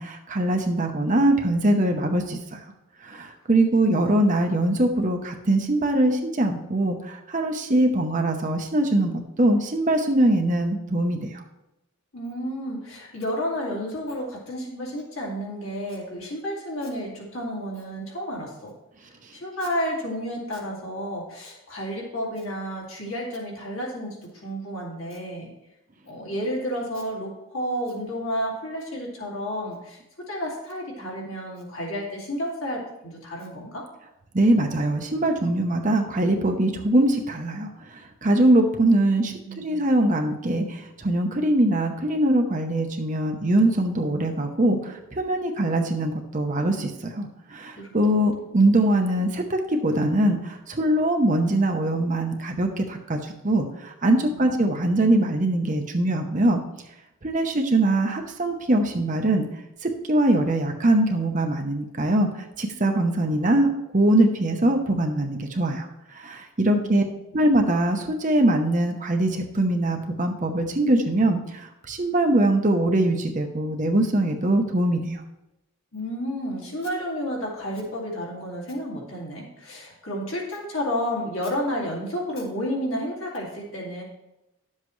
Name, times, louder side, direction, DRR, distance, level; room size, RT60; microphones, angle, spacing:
voice 1, 0.0-2.6 3.0-11.4 34.3-56.6 57.2-59.4 59.8-65.9 66.1-67.0 67.3-75.2, right 1 dB, 35° right, 4 dB, 0.8 m, -22 dB
voice 2, 3.5-4.2 12.1-18.7 19.3-25.5 26.1-33.9 39.4-39.8 47.8-47.9 54.2-54.6 66.6-67.1 75.9-84.0, equal, 75° left, -2 dB, 2.3 m, -31 dB
11.0 x 7.4 x 3.2 m, 0.92 s
head